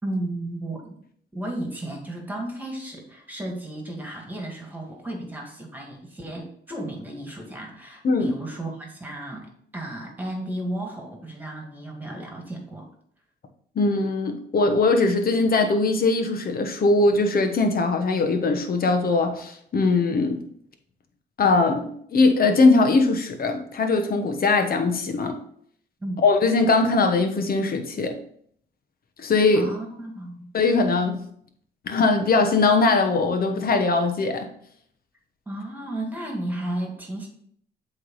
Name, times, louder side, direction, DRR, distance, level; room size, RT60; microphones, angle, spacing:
voice 1, 0.0-0.9 1.3-12.9 26.0-26.2 29.5-30.5 35.5-37.3, right 1 dB, 10° right, 1 dB, 2.1 m, -33 dB
voice 2, 13.7-20.4 21.4-25.4 26.2-28.2 29.2-29.7 30.5-31.2 31.9-34.5, left 3 dB, 50° left, 6 dB, 1.1 m, -21 dB
7.9 x 3.4 x 4.8 m, 0.65 s
cardioid pair, 90°, 20 cm